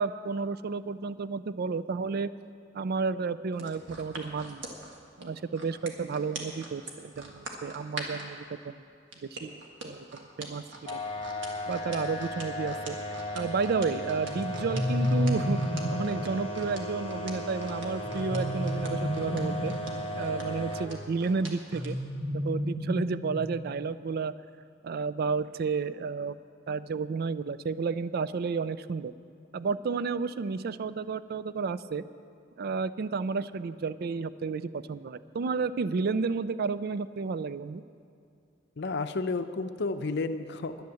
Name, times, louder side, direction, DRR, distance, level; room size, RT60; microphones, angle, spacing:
voice 1, 0.0-2.3 2.7-4.7 5.2-8.8 9.4-9.6 9.8-11.0 11.7-13.0 13.3-15.6 15.9-19.7 20.2-22.0 22.3-24.3 24.8-26.4 26.7-29.1 29.5-32.0 32.6-37.8, right 4 dB, 55° right, 15 dB, 0.4 m, -31 dB
sound 1, 3.5-8.3 9.1-21.9 22.4-22.5, right 3 dB, 70° right, 1.6 m, -43 dB
sound 2, 10.9-20.9, left 1 dB, 30° left, 1.1 m, -36 dB
sound 3, 14.3-16.1 18.0-19.8 21.7-23.6, left 1 dB, 10° right, 2.4 m, -31 dB
voice 2, 38.8-40.8, left 3 dB, 60° left, 10 dB, 0.6 m, -31 dB
10.5 x 10.5 x 7.0 m, 2.5 s
head